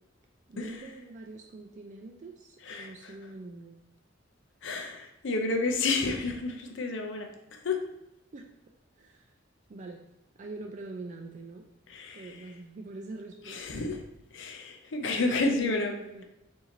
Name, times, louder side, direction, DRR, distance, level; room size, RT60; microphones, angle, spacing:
voice 1, 0.5-3.8 8.3-8.5 9.0-9.3 9.7-10.0 10.4-11.7 12.1-13.9 15.0-16.2, right 2 dB, 40° right, 1 dB, 0.4 m, -43 dB
voice 2, 2.6-3.1 4.6-7.3 7.6-7.9 11.9-12.3 13.5-14.0 14.3-16.0, left 3 dB, 65° left, 4 dB, 0.6 m, -30 dB
4.4 x 2.7 x 3.7 m, 0.87 s
head